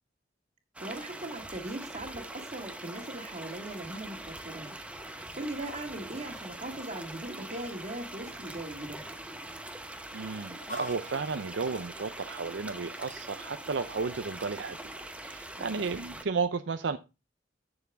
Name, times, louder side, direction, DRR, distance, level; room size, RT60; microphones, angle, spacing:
sound 1, 0.8-16.2, right 1 dB, 5° right, 0.9 m, -43 dB
voice 1, 0.8-4.8 5.4-9.0 15.6-15.8, right 1 dB, 40° right, 1.9 m, -39 dB
Chicken rooster, 2.4-15.3, left 1 dB, 45° left, 2.5 m, -53 dB
voice 2, 10.1-17.0, right 4 dB, 80° right, 0.6 m, -33 dB
10.5 x 7.1 x 3.5 m
head